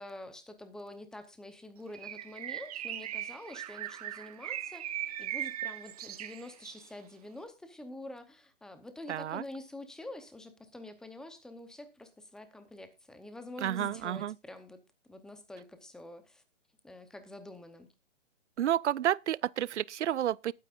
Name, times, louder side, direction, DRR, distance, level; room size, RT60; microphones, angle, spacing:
voice 1, 0.0-14.8 15.1-16.4 16.8-17.9, left 1 dB, ahead, 0.7 m, -47 dB
Bird, 1.9-6.9, right 12 dB, 30° right, 0.8 m, -39 dB
voice 2, 9.1-9.4 13.6-14.3 18.6-20.5, right 11 dB, 70° right, 0.6 m, -30 dB
20.0 x 8.9 x 2.5 m
hypercardioid pair, 150°, 37 cm